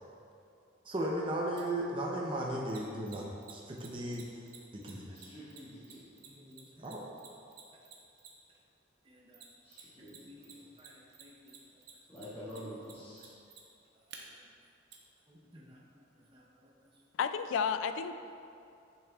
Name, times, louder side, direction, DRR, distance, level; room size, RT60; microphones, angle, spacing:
voice 1, 0.8-3.2 3.5-4.2 4.7-5.2 6.3-7.0 9.1-9.4 10.0-10.4 10.8-11.5 15.3-15.8 16.3-16.7, right 1 dB, 25° right, -2 dB, 0.6 m, -38 dB
Mechanisms, 1.6-1.7 2.7-8.6 9.3-10.2 10.4-14.2 14.9-15.0, right 8 dB, 55° right, 0.8 m, -52 dB
voice 2, 5.1-6.0 9.6-10.7 12.1-13.3, equal, 20° left, -16 dB, 1.6 m, -48 dB
voice 3, 17.2-18.3, left 6 dB, 80° left, 10 dB, 0.3 m, -32 dB
8.9 x 6.4 x 2.3 m, 2.5 s
head